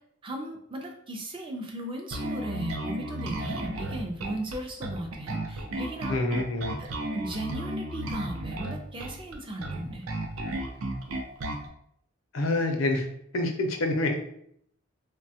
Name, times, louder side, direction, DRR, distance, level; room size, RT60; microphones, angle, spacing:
voice 1, 0.2-6.2 6.8-6.9 7.1-10.1, right 1 dB, 25° right, 2 dB, 0.4 m, -36 dB
Bass guitar, 2.1-11.7, right 1 dB, 80° right, 0.5 m, -34 dB
voice 2, 6.1-6.8 12.3-13.1 13.3-14.2, left 2 dB, 70° left, 3 dB, 0.5 m, -26 dB
3.1 x 2.2 x 2.7 m, 0.69 s
head